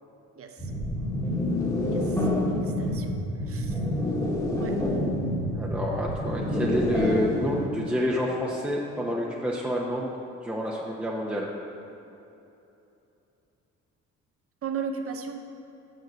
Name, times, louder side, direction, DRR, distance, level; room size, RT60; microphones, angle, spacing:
voice 1, 0.4-0.7 1.9-3.2 3.5-3.8 4.6-4.8 14.6-15.4, right 6 dB, 50° right, 6 dB, 0.9 m, -36 dB
sound 1, 0.6-7.7, left 1 dB, 10° left, 1.4 m, -27 dB
voice 2, 5.5-10.1 10.4-11.5, equal, 5° right, -3 dB, 0.8 m, -29 dB
6.7 x 6.3 x 6.2 m, 2.9 s
cardioid pair, 90°, 30 cm